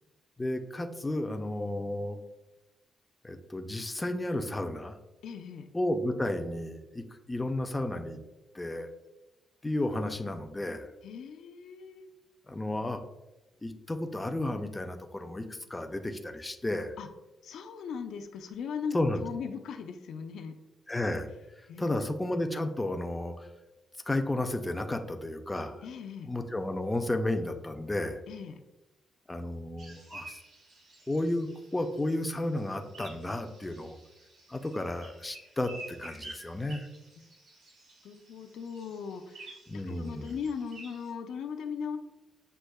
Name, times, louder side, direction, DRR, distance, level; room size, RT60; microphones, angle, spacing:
voice 1, 0.4-2.2 3.2-5.0 5.7-8.2 8.5-8.9 9.6-10.9 12.5-13.0 13.6-16.9 18.9-19.2 20.9-21.3 21.8-23.5 24.1-25.8 26.2-28.2 29.3-30.4 31.1-34.0 34.5-36.9 39.7-40.3, left 1 dB, 10° left, 6 dB, 0.3 m, -32 dB
voice 2, 5.2-5.7 11.0-12.1 17.0-17.1 17.4-20.6 21.7-22.3 25.8-26.3 28.3-28.6 37.2-37.3 38.0-42.0, left 6 dB, 80° left, 6 dB, 0.4 m, -39 dB
sound 1, 29.8-41.1, right 2 dB, 80° right, 1.3 m, -51 dB
7.6 x 2.7 x 2.2 m, 1.0 s
wide cardioid pair, 155°, 0 cm